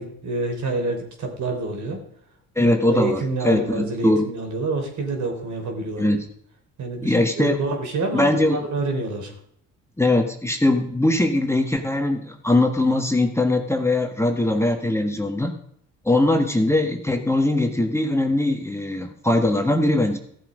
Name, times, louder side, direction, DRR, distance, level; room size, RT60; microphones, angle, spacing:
voice 1, 0.0-2.0 2.6-6.2 6.8-9.3, right 3 dB, 55° right, 3 dB, 3.9 m, -27 dB
voice 2, 2.5-4.3 6.0-6.2 7.0-7.6 8.1-8.7 10.0-15.5 16.0-20.2, left 1 dB, 10° left, 4 dB, 1.6 m, -21 dB
14.5 x 7.4 x 5.1 m, 0.68 s
supercardioid pair, 70°, 34 cm